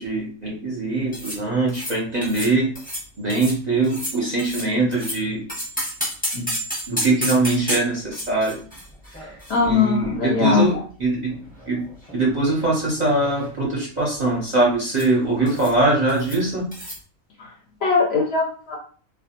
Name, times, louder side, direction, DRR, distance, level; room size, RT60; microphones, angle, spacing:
voice 1, 0.0-2.7 3.2-5.4 6.3-6.5 6.9-8.6 9.6-11.3 11.7-11.8 12.1-16.6, right 2 dB, 45° right, -5 dB, 0.6 m, -22 dB
sound 1, 1.1-1.4 1.7-1.9 2.2-2.5 2.7-3.0 3.3-3.6 3.8-5.2 5.5-10.2 10.4-10.5 11.3-12.2 12.5-12.7 13.0-13.5 14.9-15.1 15.4-15.8 16.1-16.4 16.7-17.0, equal, 10° left, 0.7 m, -31 dB
voice 2, 9.5-10.8 17.4-17.5 17.8-18.8, left 5 dB, 65° left, 0 dB, 0.7 m, -20 dB
2.2 x 2.1 x 2.8 m, 0.42 s
omnidirectional pair, 1.4 m